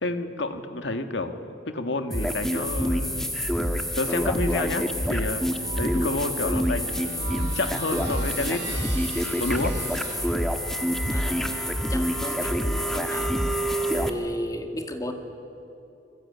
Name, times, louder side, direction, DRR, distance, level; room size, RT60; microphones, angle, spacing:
voice 1, 0.0-1.4 1.7-3.3 4.0-9.8, left 2 dB, 75° left, 7 dB, 1.9 m, -30 dB
sound 1, 2.1-14.1, equal, ahead, 1.5 m, -27 dB
sound 2, 5.4-10.2, right 3 dB, 65° right, 5.9 m, -40 dB
voice 2, 11.1-13.3 13.9-15.1, equal, 20° left, 5 dB, 2.2 m, -34 dB
28.5 x 21.0 x 9.8 m, 2.8 s
head